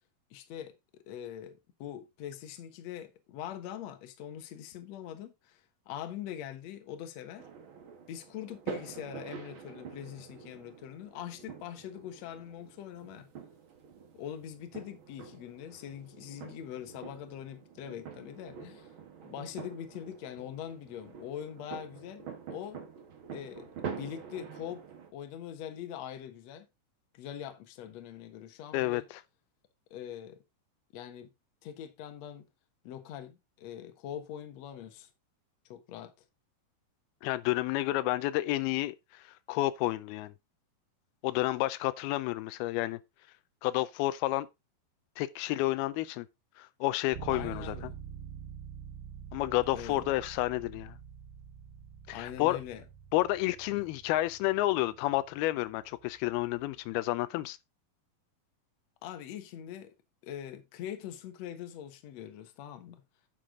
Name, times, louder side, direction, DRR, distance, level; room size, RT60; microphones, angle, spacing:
voice 1, 0.3-0.7 1.1-7.5 8.1-13.3 14.1-18.9 19.2-22.8 23.3-24.8 25.1-26.7 27.1-29.1 29.9-30.4 30.9-31.3 31.6-32.5 32.8-35.1 35.7-36.1 47.3-48.0 49.7-50.0 52.1-52.8 53.7-53.8 59.0-59.9 60.2-63.0, left 10 dB, 60° left, 2.0 m, -43 dB
sound 1, 7.4-25.1, right 6 dB, 55° right, 1.4 m, -46 dB
voice 2, 28.7-29.2 37.2-40.3 41.2-43.0 43.6-44.5 45.2-46.3 46.6-47.7 49.3-51.0 52.1-52.6 53.1-57.6, left 17 dB, 90° left, 2.5 m, -30 dB
sound 2, 47.1-56.9, right 8 dB, 85° right, 4.3 m, -47 dB
10.0 x 6.7 x 3.7 m
omnidirectional pair, 4.3 m